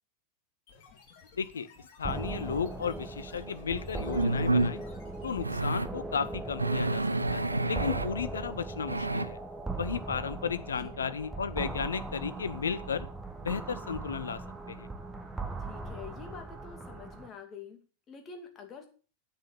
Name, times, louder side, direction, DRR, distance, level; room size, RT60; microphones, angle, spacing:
sound 1, 0.7-5.8, left 6 dB, 45° left, 3.0 m, -56 dB
voice 1, 1.3-1.7 2.0-4.8 5.2-7.0 7.3-9.4 9.8-13.1 13.4-14.4 14.7-14.9, left 6 dB, 70° left, 13 dB, 0.9 m, -34 dB
sound 2, 2.0-17.3, right 3 dB, 10° right, 1.6 m, -39 dB
sound 3, 3.4-3.5 4.2-4.7 5.4-5.9 6.6-8.1 8.9-9.3, right 2 dB, 80° right, 0.6 m, -28 dB
voice 2, 10.7-11.2 15.7-18.9, left 6 dB, 25° left, 5 dB, 2.6 m, -47 dB
8.8 x 7.6 x 7.1 m, 0.38 s
figure-of-eight pair, 90°, 0 cm